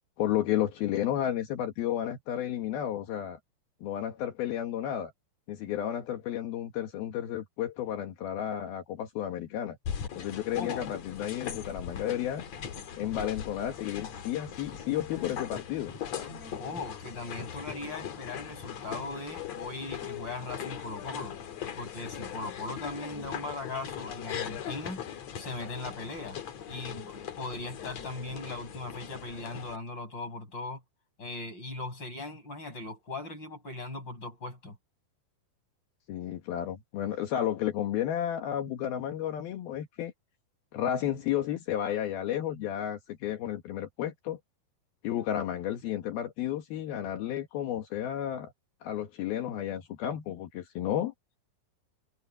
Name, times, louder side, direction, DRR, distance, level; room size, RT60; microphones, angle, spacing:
voice 1, 0.2-3.4 3.8-5.1 5.5-9.8 10.2-12.5 13.0-16.0 36.1-40.1 40.7-44.4 45.0-48.5 48.8-51.1, left 11 dB, 75° left, 3.4 m, -32 dB
sound 1, 9.9-29.8, left 8 dB, 55° left, 2.5 m, -40 dB
voice 2, 10.5-10.8 16.6-21.4 21.8-25.1 25.4-26.4 26.7-30.8 31.2-34.8, left 2 dB, 25° left, 7.1 m, -39 dB
omnidirectional pair, 4.5 m